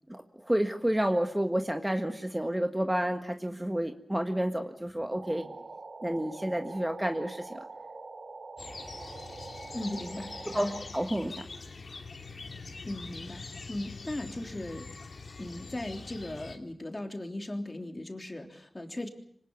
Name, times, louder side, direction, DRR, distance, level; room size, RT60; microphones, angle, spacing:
voice 1, 0.1-5.5 6.0-7.6 10.5-10.7 10.9-11.3, right 1 dB, 10° right, 5 dB, 1.5 m, -30 dB
sound 1, 5.1-10.8, right 3 dB, 60° right, 3.2 m, -44 dB
sound 2, 8.6-16.6, left 4 dB, 65° left, 2.8 m, -44 dB
voice 2, 9.7-10.8 12.8-14.9 15.4-19.1, left 1 dB, 25° left, 3 dB, 3.3 m, -38 dB
25.5 x 19.0 x 8.0 m, 0.67 s
wide cardioid pair, 75°, 0 cm